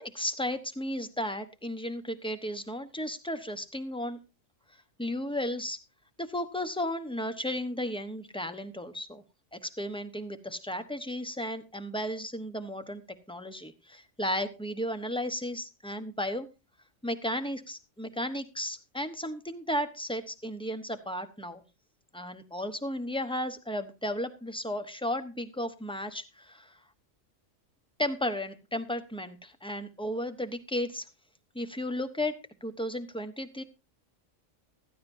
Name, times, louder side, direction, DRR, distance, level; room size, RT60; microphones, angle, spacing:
voice 1, 0.0-4.2 5.0-5.8 6.2-9.2 9.5-13.0 13.3-16.5 17.0-21.6 22.1-26.8 28.0-31.1 31.5-33.6, left 1 dB, 5° left, 9 dB, 0.9 m, -34 dB
15.5 x 13.5 x 2.7 m, 0.28 s
omnidirectional pair, 1.3 m